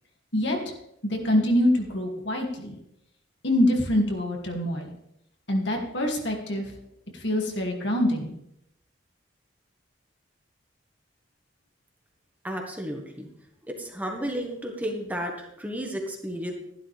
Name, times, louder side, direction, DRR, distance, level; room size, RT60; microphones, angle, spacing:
voice 1, 1.0-2.8 3.4-4.9 5.5-6.6 7.2-8.3, left 1 dB, 70° left, 1 dB, 2.4 m, -25 dB
voice 2, 12.4-13.3 13.7-16.5, equal, 10° right, 1 dB, 1.5 m, -33 dB
13.0 x 11.5 x 3.4 m, 0.78 s
head